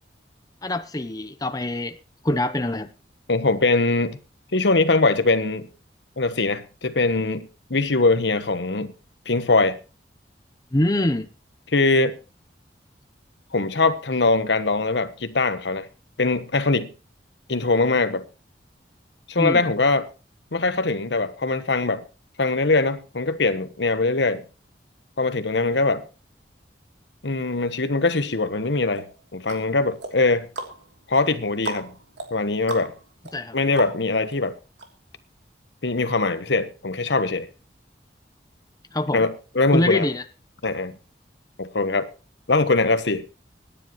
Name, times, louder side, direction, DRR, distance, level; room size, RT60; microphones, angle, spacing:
voice 1, 0.6-2.0 2.2-2.9 10.7-11.3 19.4-19.7 33.3-33.6 38.9-39.3 39.7-40.2, left 1 dB, 20° left, 0.8 m, -24 dB
voice 2, 3.3-4.2 4.5-5.7 6.2-8.9 9.3-9.8 11.7-12.2 13.5-15.9 16.2-16.9 17.5-18.2 19.3-20.1 20.5-22.0 22.4-24.4 25.2-26.0 27.2-29.1 29.3-30.5 31.1-31.9 32.3-32.9 33.5-34.6 35.8-37.5 39.1-40.1 40.6-40.9 41.6-42.1 42.5-43.2, left 3 dB, 80° left, 1.2 m, -22 dB
sound 1, 28.9-34.3 34.8-34.9, right 2 dB, 85° right, 3.1 m, -37 dB
25.0 x 10.5 x 3.1 m
head